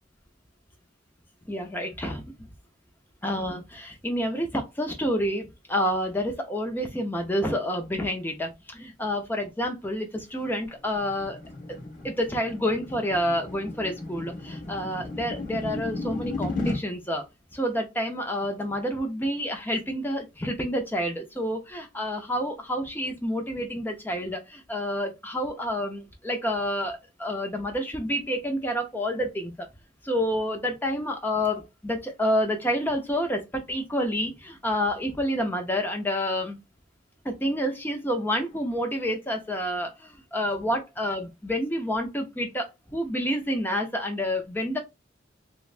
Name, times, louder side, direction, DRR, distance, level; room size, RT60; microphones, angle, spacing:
voice 1, 1.5-2.2 3.2-11.4 11.7-11.8 12.0-17.2 17.5-29.7 30.0-36.6 37.2-44.8, equal, 10° left, 0.6 m, -29 dB
sound 1, 10.3-16.8, left 2 dB, 45° left, 1.4 m, -35 dB
3.3 x 3.0 x 2.5 m
head